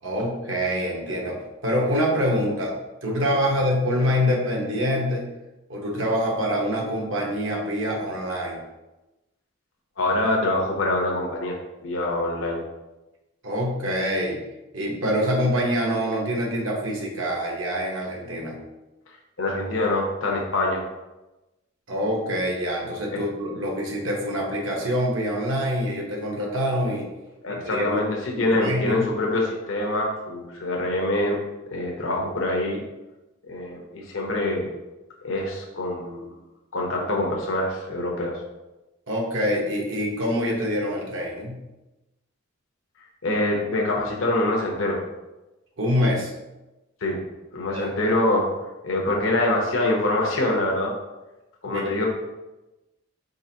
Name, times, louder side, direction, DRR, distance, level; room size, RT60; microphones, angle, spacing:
voice 1, 0.0-2.7 3.0-5.3 5.7-8.6 13.4-14.4 14.7-18.6 21.9-27.1 27.5-28.0 28.3-29.0 39.1-41.6 45.8-46.3 47.7-47.8 51.6-51.9, equal, 70° right, -2 dB, 1.1 m, -25 dB
voice 2, 10.0-12.6 19.4-20.8 23.1-23.2 27.4-31.4 31.7-32.8 33.4-34.7 35.2-36.3 36.7-38.4 43.2-45.0 47.0-47.2 47.5-48.5 48.8-50.9 51.6-52.1, left 1 dB, 75° left, -1 dB, 0.9 m, -25 dB
5.0 x 3.8 x 2.8 m, 1.0 s
head